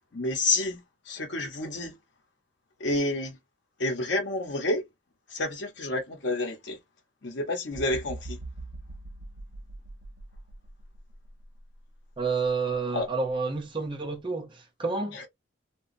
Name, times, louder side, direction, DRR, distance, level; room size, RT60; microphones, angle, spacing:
voice 1, 0.1-0.8 1.1-2.0 2.8-3.4 3.8-4.8 5.3-6.8 7.2-8.4 12.9-13.1 15.1-15.3, left 2 dB, 65° left, 0.8 m, -29 dB
sound 1, 7.7-11.7 12.2-12.4, right 2 dB, 70° right, 0.5 m, -42 dB
voice 2, 12.2-15.2, right 4 dB, 25° right, 0.7 m, -29 dB
2.8 x 2.2 x 2.5 m
head